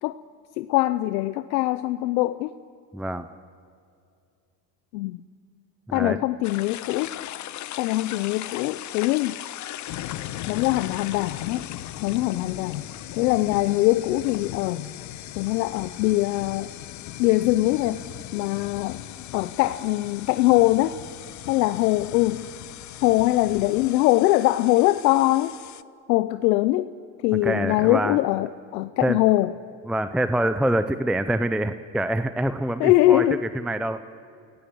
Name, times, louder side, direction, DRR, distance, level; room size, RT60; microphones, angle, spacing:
voice 1, 0.6-2.5 4.9-5.2 5.9-7.2 7.8-9.4 10.5-11.7 12.0-12.8 13.1-14.9 15.4-16.7 17.2-18.0 18.3-19.0 19.3-21.0 21.5-22.5 23.0-25.6 26.1-26.9 27.2-29.5 32.8-33.4, left 17 dB, 85° left, 13 dB, 0.8 m, -22 dB
voice 2, 2.9-3.3 5.9-6.2 27.4-28.2 29.0-29.2 29.9-33.2 33.5-34.0, right 1 dB, ahead, 10 dB, 0.6 m, -25 dB
sound 1, 6.4-25.8, left 13 dB, 35° left, 0.7 m, -40 dB
sound 2, 9.9-23.9, left 12 dB, 65° left, 1.4 m, -40 dB
29.5 x 17.0 x 7.8 m, 2.4 s
supercardioid pair, 105°, 49 cm